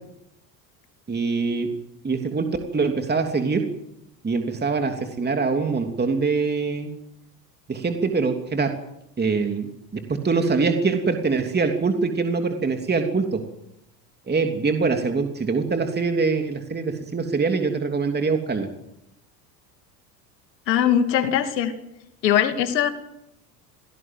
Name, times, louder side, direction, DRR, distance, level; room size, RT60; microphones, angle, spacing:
voice 1, 1.1-1.7 2.0-3.6 4.2-6.9 7.7-8.7 9.2-13.4 14.3-18.7, right 4 dB, 20° right, 5 dB, 3.1 m, -24 dB
voice 2, 20.7-21.7 22.2-22.9, left 9 dB, 80° left, 9 dB, 2.5 m, -20 dB
28.0 x 17.5 x 7.8 m, 0.83 s
hypercardioid pair, 80°, 49 cm